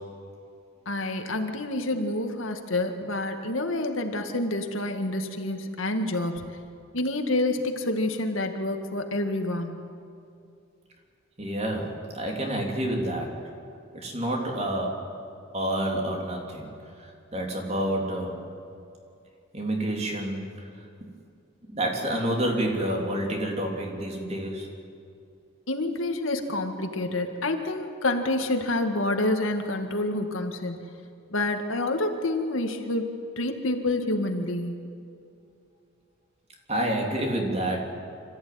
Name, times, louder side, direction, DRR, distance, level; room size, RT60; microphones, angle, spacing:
voice 1, 0.9-6.4 6.9-9.8 25.7-30.8 31.3-34.8, left 2 dB, 80° left, 5 dB, 2.0 m, -28 dB
voice 2, 11.4-13.4 13.9-15.0 15.5-16.7 17.0-18.4 19.5-20.7 21.7-24.7 36.7-38.0, right 1 dB, 30° right, 0 dB, 3.3 m, -28 dB
26.0 x 14.5 x 9.5 m, 2.5 s
head